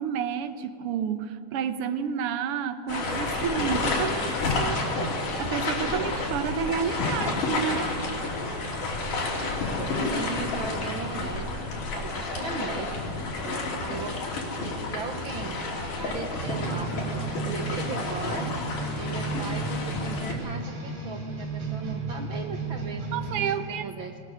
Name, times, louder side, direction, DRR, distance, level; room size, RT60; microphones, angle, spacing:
voice 1, 0.0-5.1 5.4-7.9 23.1-23.8, right 7 dB, 65° right, 10 dB, 1.5 m, -30 dB
sound 1, 2.9-20.3, left 3 dB, 90° left, 4.8 m, -30 dB
voice 2, 10.1-14.2 14.6-15.6 16.0-18.6 19.0-23.0 23.4-24.2, right 5 dB, 80° right, 5 dB, 1.1 m, -38 dB
sound 2, 16.4-23.5, right 3 dB, 50° right, 4.1 m, -33 dB
26.0 x 20.5 x 6.5 m, 2.4 s
omnidirectional pair, 3.5 m